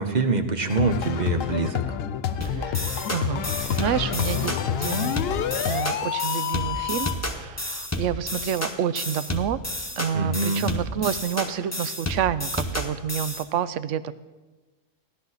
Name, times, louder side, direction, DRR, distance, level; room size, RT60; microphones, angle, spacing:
voice 1, 0.0-1.8 10.1-10.7, right 3 dB, 40° right, 7 dB, 0.8 m, -25 dB
sound 1, 0.7-5.7, left 9 dB, 85° left, 1.1 m, -29 dB
sound 2, 2.4-13.4, left 1 dB, 15° left, 1.1 m, -31 dB
voice 2, 2.4-5.2 5.7-9.6 10.0-14.1, right 9 dB, 75° right, 15 dB, 0.9 m, -29 dB
sound 3, 3.4-7.3, left 11 dB, 65° left, 0.7 m, -30 dB
16.0 x 11.5 x 4.0 m, 1.2 s
omnidirectional pair, 1.3 m